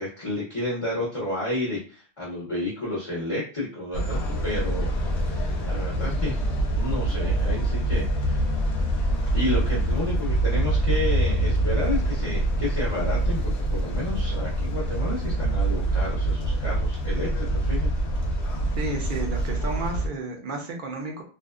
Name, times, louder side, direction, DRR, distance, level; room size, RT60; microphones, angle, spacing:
voice 1, 0.0-4.9 5.2-6.4 6.7-8.4 9.3-17.9, left 1 dB, 35° left, -7 dB, 0.7 m, -31 dB
sound 1, 3.9-20.1, right 1 dB, 80° left, 0.9 m, -25 dB
voice 2, 18.8-21.2, right 3 dB, 55° right, 2 dB, 0.7 m, -32 dB
2.6 x 2.2 x 2.3 m, 0.38 s
omnidirectional pair, 1.1 m